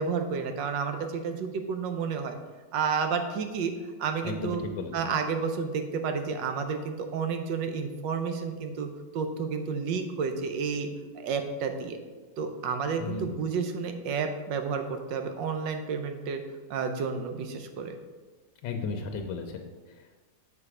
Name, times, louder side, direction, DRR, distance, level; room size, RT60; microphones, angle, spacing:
voice 1, 0.0-2.4 2.7-3.7 4.0-4.6 4.9-8.9 9.1-10.9 11.1-12.0 12.4-16.4 16.7-18.0, right 5 dB, 80° right, 7 dB, 1.4 m, -31 dB
voice 2, 4.2-5.1 13.0-13.4 18.6-20.2, left 4 dB, 85° left, 5 dB, 1.4 m, -35 dB
6.8 x 4.9 x 4.8 m, 1.4 s
omnidirectional pair, 2.0 m